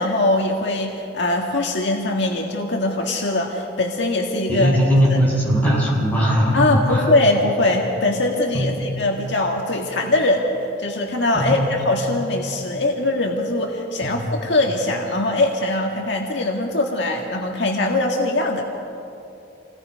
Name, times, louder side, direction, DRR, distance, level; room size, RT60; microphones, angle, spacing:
voice 1, 0.0-4.8 5.1-5.2 6.5-10.5 10.8-18.6, left 2 dB, 70° left, 0 dB, 1.9 m, -21 dB
voice 2, 4.5-7.1 8.5-8.8 11.3-11.7 14.0-14.3, equal, 10° left, -6 dB, 7.0 m, -19 dB
28.0 x 19.0 x 5.3 m, 2.8 s
head